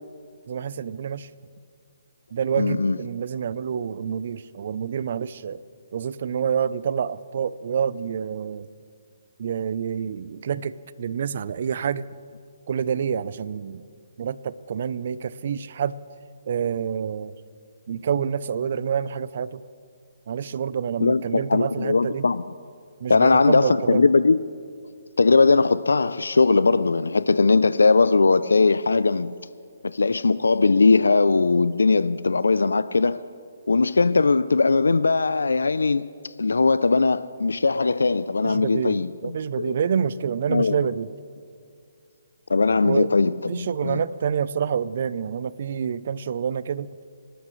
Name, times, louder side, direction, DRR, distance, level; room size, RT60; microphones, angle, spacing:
voice 1, 0.5-1.3 2.3-5.6 5.9-8.7 9.4-12.1 12.7-13.8 14.2-16.0 16.5-17.3 17.9-19.6 20.3-22.3 23.0-24.1 38.4-41.1 42.8-43.1 43.5-46.9, right 7 dB, 50° right, 17 dB, 0.5 m, -27 dB
voice 2, 2.6-3.0 21.0-22.4 23.1-24.4 25.2-29.3 29.8-33.2 33.7-36.1 36.4-39.7 40.5-40.8 42.5-44.0, left 4 dB, 90° left, 15 dB, 0.4 m, -20 dB
26.0 x 12.5 x 3.1 m, 2.2 s
hypercardioid pair, 155°, 0 cm